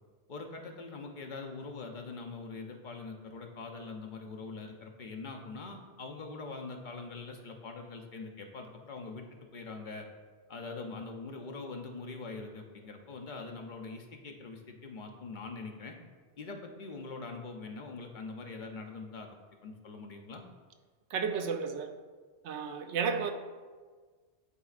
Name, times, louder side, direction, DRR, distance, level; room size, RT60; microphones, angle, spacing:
voice 1, 0.3-9.3 9.5-10.1 10.5-16.0 16.4-19.3 19.6-20.4, left 3 dB, 50° left, 0.7 m, -43 dB
voice 2, 21.1-21.9 22.4-23.3, right 6 dB, 75° right, 0.9 m, -32 dB
11.0 x 4.1 x 2.4 m
omnidirectional pair, 1.2 m